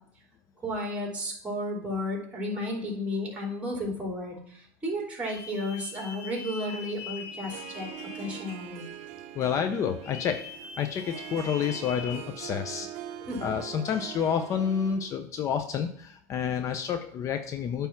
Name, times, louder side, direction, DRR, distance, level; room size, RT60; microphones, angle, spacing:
voice 1, 0.6-8.8 13.2-13.5, left 1 dB, 15° right, -1 dB, 3.1 m, -33 dB
sound 1, 5.2-9.1 10.0-12.2, left 6 dB, 90° left, 1.3 m, -43 dB
Harp, 7.3-15.2, right 12 dB, 80° right, 0.7 m, -43 dB
voice 2, 9.3-12.9 13.4-17.9, left 7 dB, 40° left, 7 dB, 0.6 m, -29 dB
8.8 x 3.5 x 5.9 m, 0.62 s
supercardioid pair, 125°, 8 cm